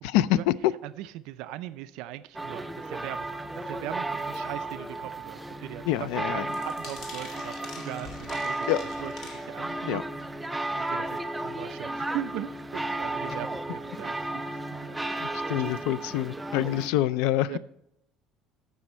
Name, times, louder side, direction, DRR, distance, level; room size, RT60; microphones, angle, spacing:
voice 1, 0.0-0.7 5.8-6.5 8.7-8.8 9.9-10.0 15.2-17.6, left 14 dB, 90° left, 0.3 m, -26 dB
voice 2, 0.8-3.3 3.7-8.7 9.0-9.1 9.5-10.0 10.7-11.1 11.4-14.4 14.8-15.0 15.5-15.8 16.6-16.7 17.5-17.6, right 14 dB, 75° right, 0.4 m, -39 dB
sound 1, 2.3-16.9, right 2 dB, 10° right, 0.4 m, -34 dB
sound 2, 6.5-9.9 10.2-10.5 11.0-11.1 11.3-11.4, left 3 dB, 45° left, 2.2 m, -45 dB
14.0 x 6.2 x 4.3 m
cardioid pair, 145°, 0 cm